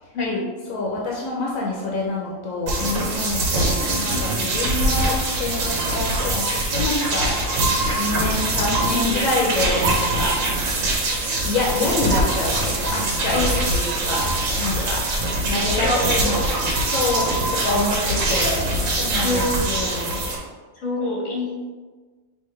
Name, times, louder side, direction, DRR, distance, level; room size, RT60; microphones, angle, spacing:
voice 1, 0.1-0.5 3.8-4.0 8.9-9.2 11.1-11.2 13.3-13.5 15.8-16.5 19.2-19.5 20.7-21.7, left 2 dB, 70° left, -2 dB, 1.5 m, -25 dB
voice 2, 0.7-10.4 11.4-13.4 13.7-14.2 14.6-15.0 15.4-16.4 16.9-18.6 18.9-20.2, left 2 dB, 90° left, -2 dB, 1.1 m, -27 dB
sound 1, 2.7-20.4, right 2 dB, 75° right, 1.2 m, -23 dB
5.5 x 2.9 x 3.2 m, 1.4 s
omnidirectional pair, 1.4 m